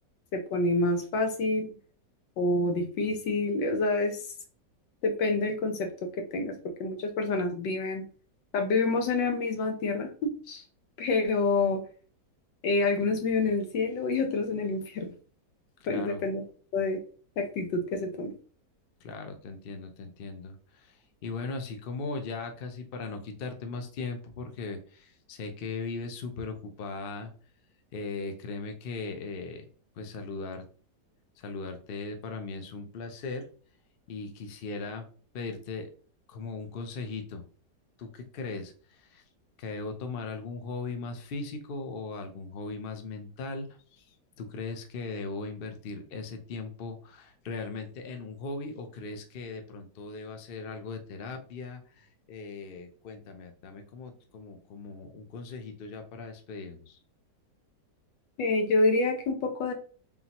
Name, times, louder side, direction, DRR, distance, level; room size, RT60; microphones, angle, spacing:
voice 1, 0.3-1.7 2.4-4.2 5.0-5.9 6.2-6.5 6.8-8.1 8.5-10.6 11.0-11.8 12.6-15.1 15.9-16.4 16.7-17.0 17.4-18.3 58.4-59.7, left 3 dB, 85° left, 5 dB, 1.6 m, -27 dB
voice 2, 15.9-16.2 19.0-27.3 27.9-29.6 30.0-30.6 31.4-33.5 34.1-35.1 35.3-35.9 36.3-37.4 38.0-39.2 39.6-57.0, left 3 dB, 60° left, 5 dB, 0.6 m, -38 dB
3.8 x 3.8 x 2.9 m, 0.41 s
omnidirectional pair, 1.9 m